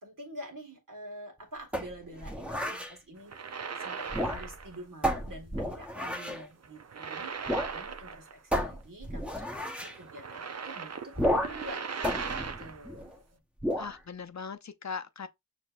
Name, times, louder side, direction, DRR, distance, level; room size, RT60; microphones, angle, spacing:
voice 1, 0.0-3.3 3.8-7.3 7.7-12.3 12.6-13.4, right 1 dB, 75° right, 1.7 m, -47 dB
sound 1, 1.7-2.9 4.0-4.7 5.0-6.4 7.5-7.8 8.0-8.1 8.5-10.0 11.1-11.7 12.0-13.2 13.6-14.0, equal, 5° right, 0.8 m, -32 dB
sound 2, 3.2-4.8 5.1-5.3 6.6-8.6 8.8-8.9 9.8-12.9, right 5 dB, 50° right, 0.5 m, -39 dB
voice 2, 13.8-15.3, left 5 dB, 55° left, 0.6 m, -39 dB
6.4 x 2.7 x 2.4 m
wide cardioid pair, 40°, 32 cm